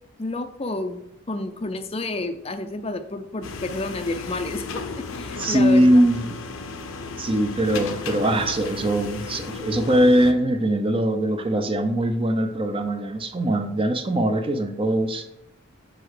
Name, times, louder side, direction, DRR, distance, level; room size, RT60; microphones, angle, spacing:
voice 1, 0.2-6.0, left 2 dB, 30° left, 8 dB, 0.5 m, -30 dB
sound 1, 3.4-10.3, left 4 dB, 70° left, 0.7 m, -35 dB
voice 2, 5.4-6.3 7.2-15.2, right 1 dB, 25° right, 7 dB, 0.6 m, -21 dB
6.8 x 5.3 x 4.8 m, 0.81 s
head